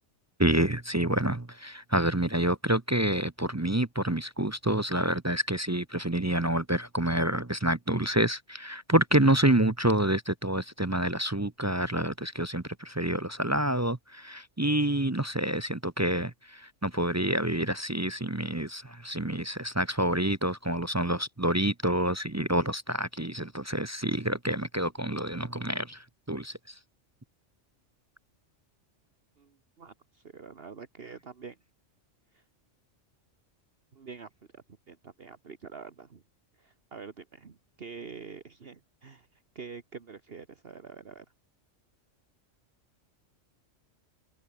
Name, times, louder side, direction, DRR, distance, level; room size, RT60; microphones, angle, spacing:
voice 1, 0.4-26.5, right 1 dB, 15° right, 0.7 m, -28 dB
voice 2, 29.4-31.6 32.3-32.4 33.9-36.2 36.6-41.2, right 5 dB, 50° right, 1.6 m, -46 dB
omnidirectional pair, 1.3 m